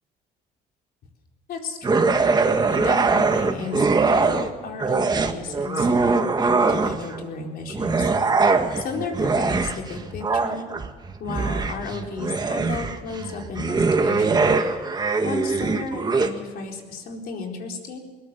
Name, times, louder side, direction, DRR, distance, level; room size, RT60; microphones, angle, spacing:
voice 1, 1.5-2.3 2.6-8.1 8.7-10.7 11.2-14.9 15.2-18.0, left 4 dB, 65° left, 1 dB, 4.4 m, -34 dB
sound 1, 1.8-4.5 4.8-7.2 7.7-16.3, right 4 dB, 25° right, 1.6 m, -22 dB
21.5 x 19.5 x 7.0 m, 1.5 s
cardioid pair, 110°, 17 cm